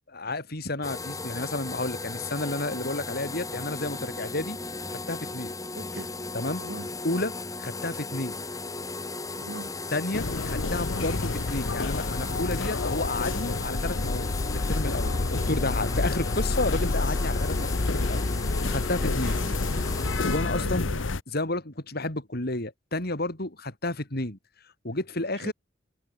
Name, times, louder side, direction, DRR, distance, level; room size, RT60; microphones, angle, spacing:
voice 1, 0.1-4.6 4.9-5.5 6.3-6.6 7.0-7.3 7.6-8.4 9.9-18.3 18.6-19.4 19.8-19.9 20.2-20.9 21.3-24.4 24.8-25.5, left 2 dB, 55° left, 3.6 m, -31 dB
sound 1, 0.8-20.4, left 3 dB, 20° left, 1.4 m, -36 dB
voice 2, 5.7-6.1 6.6-6.9 9.3-9.7 19.2-19.9 20.2-21.0 25.3-25.5, right 2 dB, 70° right, 2.5 m, -42 dB
sound 2, 10.1-21.2, left 3 dB, 90° left, 1.0 m, -28 dB
head